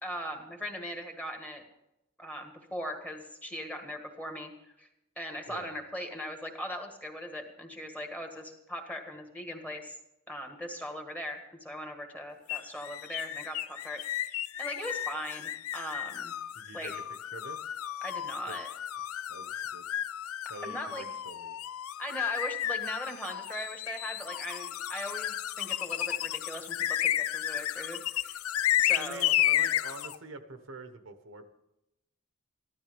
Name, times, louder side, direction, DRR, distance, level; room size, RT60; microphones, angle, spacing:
voice 1, 0.0-1.6 2.2-4.5 4.8-4.9 5.2-9.9 10.3-16.3 16.7-16.9 18.0-18.7 20.6-21.1 22.0-28.4 28.8-29.3, equal, 5° left, 4 dB, 1.7 m, -39 dB
sound 1, 12.5-30.2, left 12 dB, 80° left, 0.4 m, -32 dB
voice 2, 16.5-17.7 18.5-18.6 19.0-19.9 20.5-21.6 28.9-31.5, right 2 dB, 65° right, 8 dB, 1.2 m, -46 dB
14.5 x 12.5 x 5.2 m, 0.88 s
head